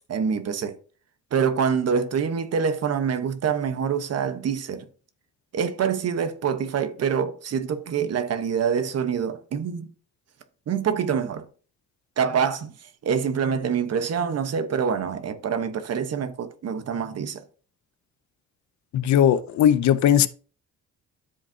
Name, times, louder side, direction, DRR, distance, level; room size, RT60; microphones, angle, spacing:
voice 1, 0.1-0.8 1.3-4.9 5.5-9.9 10.7-11.5 12.2-17.4, right 7 dB, 55° right, 1.1 m, -26 dB
voice 2, 18.9-20.3, left 10 dB, 70° left, 0.7 m, -18 dB
12.5 x 5.2 x 2.8 m
cardioid pair, 90°, 30 cm